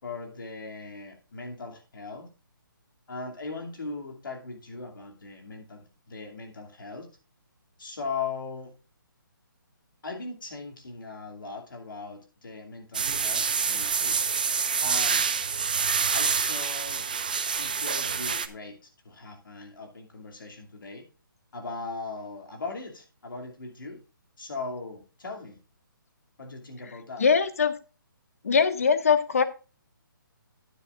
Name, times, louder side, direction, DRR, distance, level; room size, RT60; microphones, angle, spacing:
voice 1, 0.0-2.3 3.1-7.1 7.8-8.7 10.0-14.2 14.8-15.2 16.1-17.1 17.6-21.1 21.5-24.0 24.4-25.6 26.4-27.2, left 4 dB, 70° left, 2 dB, 2.6 m, -39 dB
sound 1, 12.9-18.5, right 6 dB, 25° right, 0.4 m, -27 dB
voice 2, 27.2-27.8 28.4-29.4, left 6 dB, 40° left, 12 dB, 0.9 m, -22 dB
11.0 x 9.6 x 2.5 m, 0.33 s
hypercardioid pair, 180°, 11 cm